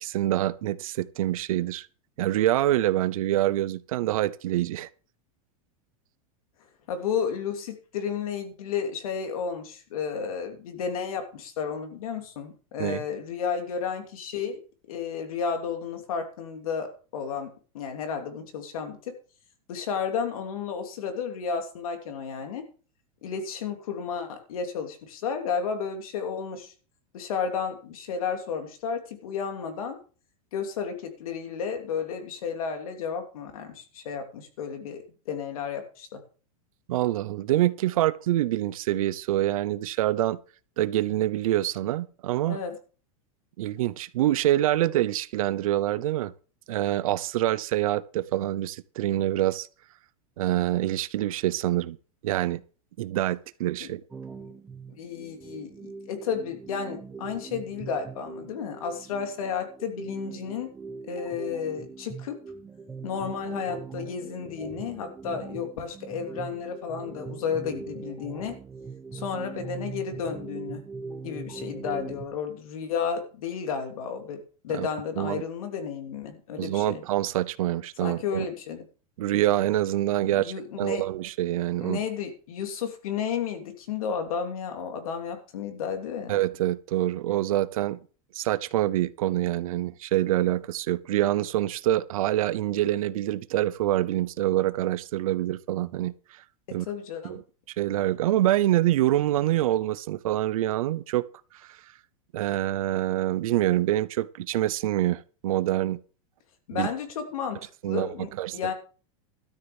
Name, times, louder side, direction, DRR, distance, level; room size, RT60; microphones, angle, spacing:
voice 1, 0.0-1.9 2.2-4.9 12.8-13.0 36.9-40.4 40.8-42.6 43.6-46.3 46.7-49.7 50.4-52.0 52.2-52.6 53.0-54.0 74.7-74.9 75.2-75.4 76.6-78.5 79.2-82.0 86.3-88.0 88.3-96.1 96.7-96.9 97.2-97.4 97.8-101.2 102.3-106.0 106.7-106.9 107.8-108.6, right 14 dB, 75° right, 0.8 m, -26 dB
voice 2, 6.9-14.6 14.9-19.1 19.7-22.6 23.2-26.7 27.1-30.0 30.5-35.0 35.3-36.2 42.5-42.8 53.8-53.9 54.9-60.7 61.1-62.4 63.0-68.5 69.1-70.8 71.2-77.0 78.0-78.8 80.2-81.0 81.8-86.4 96.9-97.4 106.7-108.7, left 6 dB, 75° left, 3.0 m, -32 dB
sound 1, 54.1-72.3, right 4 dB, 10° right, 0.9 m, -41 dB
12.5 x 6.6 x 7.1 m
supercardioid pair, 170°, 18 cm